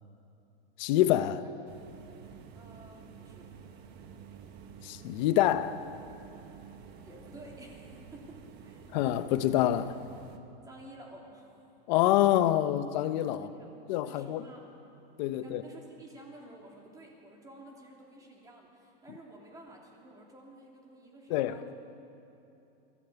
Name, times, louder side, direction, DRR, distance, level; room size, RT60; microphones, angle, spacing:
voice 1, 0.8-1.4 4.8-5.8 8.9-10.0 11.9-13.5 13.9-14.4 15.2-15.6 21.3-21.7, left 13 dB, 45° left, 1.0 m, -26 dB
sound 1, 1.7-10.4, right 6 dB, 35° right, 1.3 m, -50 dB
voice 2, 2.5-3.5 7.0-8.4 8.6-8.9 10.6-11.7 13.3-13.7 14.0-14.7 15.3-21.7, right 1 dB, 10° right, 3.2 m, -51 dB
23.0 x 16.0 x 8.5 m
supercardioid pair, 160°, 30 cm